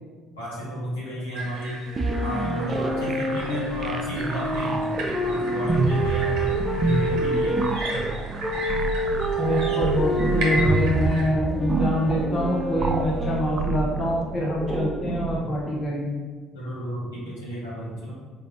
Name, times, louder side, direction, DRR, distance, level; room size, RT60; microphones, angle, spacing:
voice 1, 0.3-1.8 2.2-4.8 5.2-6.6 6.8-7.6 16.5-18.1, equal, 80° left, -7 dB, 1.3 m, -32 dB
sound 1, 1.3-11.2, right 1 dB, 60° right, 0.9 m, -36 dB
sound 2, 1.9-7.7 8.4-13.9, right 1 dB, 5° right, 0.7 m, -28 dB
sound 3, 2.0-15.6, right 3 dB, 30° right, 0.4 m, -28 dB
voice 2, 9.4-16.2, left 1 dB, 35° left, -4 dB, 1.0 m, -25 dB
3.6 x 3.3 x 3.5 m, 1.5 s
figure-of-eight pair, 55°, 0 cm